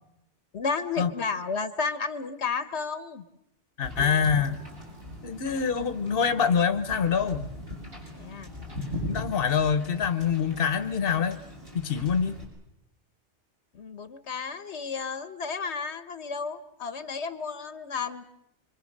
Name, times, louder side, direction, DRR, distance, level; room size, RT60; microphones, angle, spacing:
voice 1, 0.5-3.2 8.1-8.5 13.7-18.2, left 5 dB, 75° left, 12 dB, 1.4 m, -32 dB
voice 2, 3.8-4.6 5.2-7.4 9.1-11.4 11.7-12.4, left 6 dB, 55° left, 11 dB, 1.3 m, -25 dB
Wind / Boat Water vehicle, 3.8-12.4, left 1 dB, 50° right, 6.7 m, -39 dB
sound 1, 4.0-7.2, right 1 dB, 90° right, 5.2 m, -52 dB
25.5 x 25.5 x 6.6 m, 0.80 s
omnidirectional pair, 1.2 m